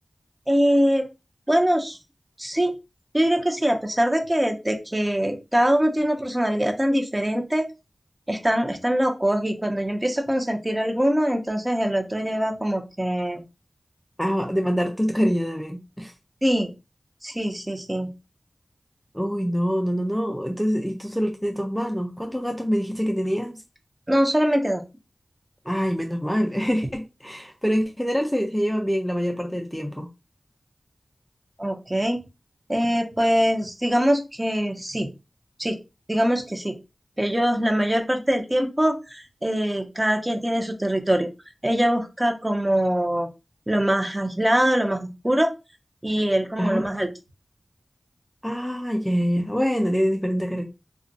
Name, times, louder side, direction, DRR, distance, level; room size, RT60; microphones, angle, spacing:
voice 1, 0.5-1.0 1.5-2.0 2.4-2.7 3.1-7.7 8.3-13.4 16.4-16.7 17.2-18.1 24.1-24.8 31.6-32.2 32.7-35.1 35.6-35.8 36.1-36.7 37.2-41.3 41.6-43.3 43.7-45.5 46.0-47.1, equal, 20° right, 0.8 m, -23 dB
voice 2, 14.2-16.1 19.1-23.6 25.7-30.1 46.6-46.8 48.4-50.6, equal, 5° left, 0.5 m, -25 dB
2.4 x 2.2 x 3.9 m
cardioid pair, 45°, 0 cm